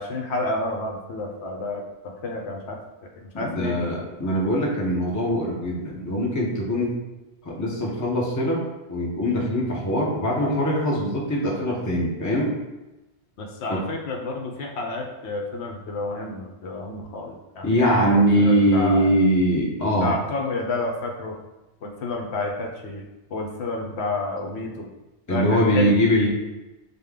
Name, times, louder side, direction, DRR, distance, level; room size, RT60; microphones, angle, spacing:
voice 1, 0.0-2.8 3.2-4.1 13.4-19.1 20.0-21.4 21.8-23.0 23.3-24.9 25.3-26.0, left 2 dB, 70° left, 1 dB, 0.9 m, -30 dB
voice 2, 3.3-7.0 7.4-8.6 8.9-12.5 13.7-13.8 17.6-20.1 25.3-26.3, equal, 20° left, -3 dB, 0.7 m, -22 dB
5.0 x 2.2 x 3.6 m, 1.0 s
omnidirectional pair, 1.2 m